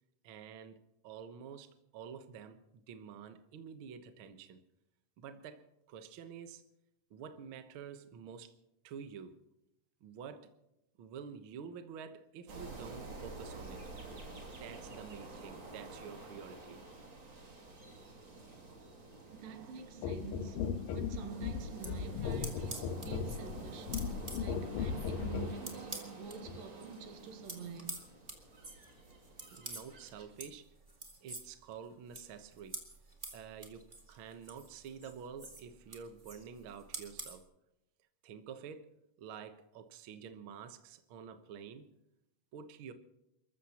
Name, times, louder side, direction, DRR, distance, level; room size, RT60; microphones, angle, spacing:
voice 1, 0.2-4.6 5.2-6.6 7.1-8.6 8.8-9.4 10.0-10.5 11.0-13.8 14.5-16.8 29.5-30.7 31.2-32.8 33.3-37.5 38.2-38.9 39.2-41.9 42.5-42.9, right 7 dB, 60° right, 1.3 m, -49 dB
sound 1, 12.5-30.2, right 2 dB, 35° right, 3.2 m, -50 dB
voice 2, 19.3-28.1, right 4 dB, 85° right, 2.9 m, -47 dB
sound 2, 20.0-25.6 26.5-26.6, left 6 dB, 85° left, 2.7 m, -37 dB
sound 3, 21.6-26.4 26.7-37.4, right 2 dB, 20° right, 1.7 m, -48 dB
29.5 x 14.5 x 3.0 m
omnidirectional pair, 3.9 m